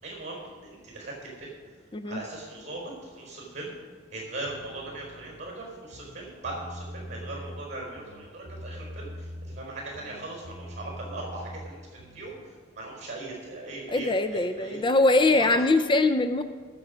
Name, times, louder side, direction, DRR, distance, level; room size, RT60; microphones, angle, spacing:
voice 1, 0.0-1.5 2.1-3.7 4.1-12.3 12.8-15.6, right 2 dB, 35° right, -1 dB, 4.3 m, -39 dB
sound 1, 4.4-5.5 5.9-7.6 8.0-9.7 9.9-12.3, equal, 60° right, 1.3 m, -42 dB
voice 2, 13.9-16.4, left 2 dB, 25° left, 9 dB, 0.5 m, -22 dB
18.5 x 6.9 x 5.1 m, 1.5 s
head